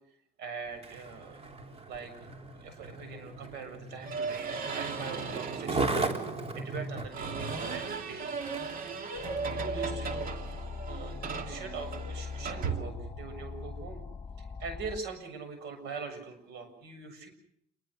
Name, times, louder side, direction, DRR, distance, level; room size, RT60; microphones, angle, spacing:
voice 1, 0.4-1.4 1.9-8.3 9.2-10.4 10.9-14.0 14.6-17.3, right 5 dB, 85° right, 9 dB, 7.3 m, -42 dB
Skateboard, 0.7-9.5 10.1-10.3, right 3 dB, 35° right, 3.7 m, -37 dB
sound 1, 4.0-5.7 7.1-13.4, right 5 dB, 55° right, 2.7 m, -36 dB
sound 2, 9.1-15.0, left 5 dB, 20° left, 4.0 m, -41 dB
28.0 x 22.5 x 6.5 m, 0.69 s
cardioid pair, 110°, 17 cm